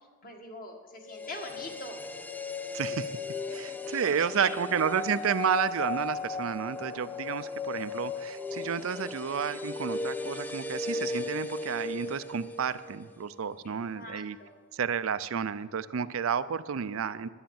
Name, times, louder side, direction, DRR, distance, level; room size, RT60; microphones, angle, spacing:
voice 1, 0.2-2.0 4.0-5.0 13.6-14.5, left 2 dB, 45° left, 2 dB, 1.7 m, -43 dB
sound 1, 1.0-13.1 13.4-13.5, left 3 dB, 10° left, 0.4 m, -36 dB
voice 2, 2.7-3.1 3.5-14.4 14.7-17.3, right 7 dB, 85° right, 14 dB, 0.5 m, -31 dB
10.5 x 10.0 x 7.1 m, 1.5 s
head